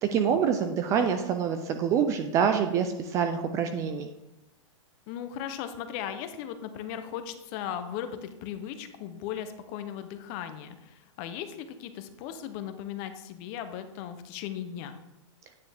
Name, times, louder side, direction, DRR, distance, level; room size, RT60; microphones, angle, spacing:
voice 1, 0.0-4.1, right 7 dB, 20° right, 7 dB, 0.3 m, -26 dB
voice 2, 5.1-15.0, left 9 dB, 35° left, 9 dB, 0.7 m, -37 dB
9.4 x 6.7 x 3.5 m, 0.93 s
hypercardioid pair, 155°, 16 cm